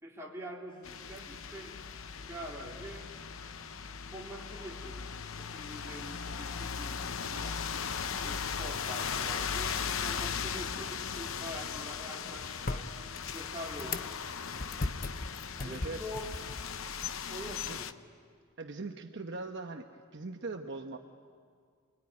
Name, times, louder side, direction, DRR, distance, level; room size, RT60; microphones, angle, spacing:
voice 1, 0.0-2.0 2.3-3.1 4.1-5.1 5.4-7.6 8.2-12.9 13.3-14.1 15.6-16.3 17.3-17.9, equal, 15° right, -3 dB, 3.5 m, -45 dB
sound 1, 0.7-16.8, left 1 dB, 25° left, 3.5 m, -59 dB
sound 2, 0.8-17.9, left 6 dB, 70° left, 0.8 m, -38 dB
sound 3, 11.0-17.7, left 2 dB, 45° left, 0.8 m, -41 dB
voice 2, 15.6-16.1 17.4-17.8 18.6-21.0, right 3 dB, 55° right, 4 dB, 1.0 m, -41 dB
27.5 x 21.5 x 9.7 m, 2.1 s
head